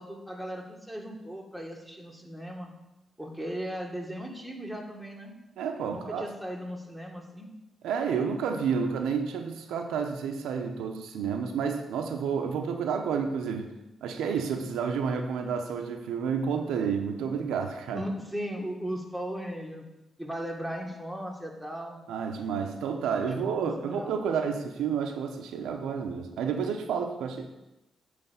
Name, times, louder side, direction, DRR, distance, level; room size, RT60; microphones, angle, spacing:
voice 1, 0.0-2.7 3.2-5.3 5.9-7.5 17.9-19.8 20.2-22.0 23.5-24.2, equal, ahead, -1 dB, 1.8 m, -37 dB
voice 2, 5.6-6.3 7.8-13.7 14.0-18.0 22.1-27.5, right 6 dB, 90° right, 4 dB, 0.8 m, -30 dB
9.3 x 3.4 x 6.9 m, 0.96 s
cardioid pair, 65°, 0 cm